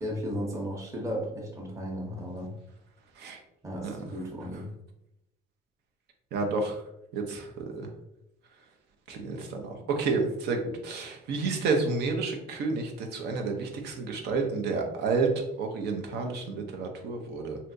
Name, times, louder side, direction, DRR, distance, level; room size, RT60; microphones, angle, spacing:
voice 1, 0.0-2.5 3.6-4.7, equal, 15° right, -2 dB, 0.8 m, -35 dB
voice 2, 6.3-6.8 7.1-7.8 9.1-17.6, right 4 dB, 75° right, 3 dB, 0.7 m, -30 dB
3.3 x 2.8 x 2.6 m, 0.83 s
cardioid pair, 110°, 17 cm